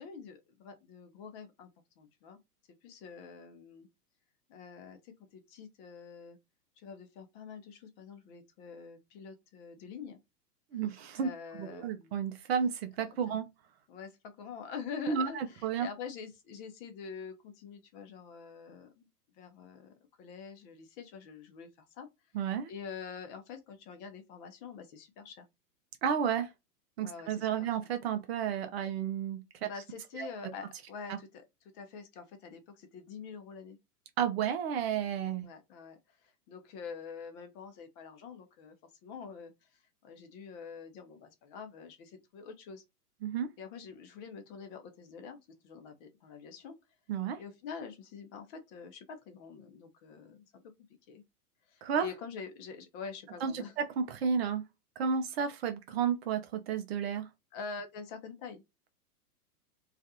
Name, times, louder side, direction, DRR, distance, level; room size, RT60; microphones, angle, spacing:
voice 1, 0.0-1.7 2.0-2.4 2.8-3.9 4.5-6.4 6.8-10.2 11.2-12.1 13.3-13.4 13.9-19.1 19.4-22.1 22.7-25.4 27.0-27.7 29.6-31.4 31.7-33.8 35.4-38.7 39.0-42.8 43.6-46.7 47.4-50.7 51.1-51.2 51.7-53.7 57.5-58.6, left 6 dB, 35° left, 0.7 m, -46 dB
voice 2, 10.7-11.3 11.6-13.5 15.1-15.9 22.3-22.7 26.0-26.5 27.0-29.7 30.2-30.3 31.1-31.2 34.2-35.4 43.2-43.5 47.1-47.4 51.8-52.1 53.4-54.6 55.0-57.3, right 7 dB, 45° right, 0.5 m, -32 dB
2.4 x 2.4 x 2.6 m
hypercardioid pair, 110°, 47 cm